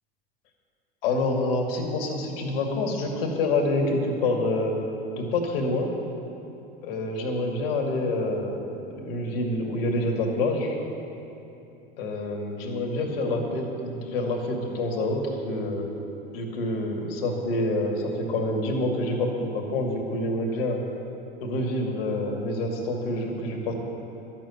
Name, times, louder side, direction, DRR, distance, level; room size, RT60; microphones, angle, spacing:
voice 1, 1.0-4.8 5.2-5.9 6.8-10.8 12.0-15.9 16.3-20.8 21.4-23.7, left 2 dB, 70° left, 1 dB, 2.5 m, -27 dB
12.0 x 7.6 x 9.7 m, 2.9 s
hypercardioid pair, 90°, 30 cm